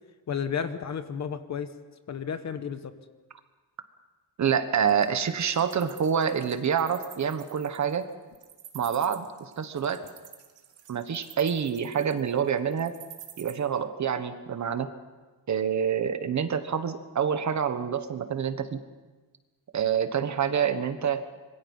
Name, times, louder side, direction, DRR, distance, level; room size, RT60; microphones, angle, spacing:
voice 1, 0.3-1.7 2.1-2.9, left 7 dB, 40° left, 10 dB, 1.2 m, -32 dB
voice 2, 4.4-8.1 8.7-10.0 10.9-12.9 13.4-14.9 15.5-18.8 19.7-21.2, right 7 dB, 40° right, 10 dB, 1.4 m, -27 dB
Wild animals, 4.9-13.5, right 10 dB, 80° right, 2.4 m, -48 dB
26.0 x 22.5 x 5.6 m, 1.3 s
wide cardioid pair, 165°, 42 cm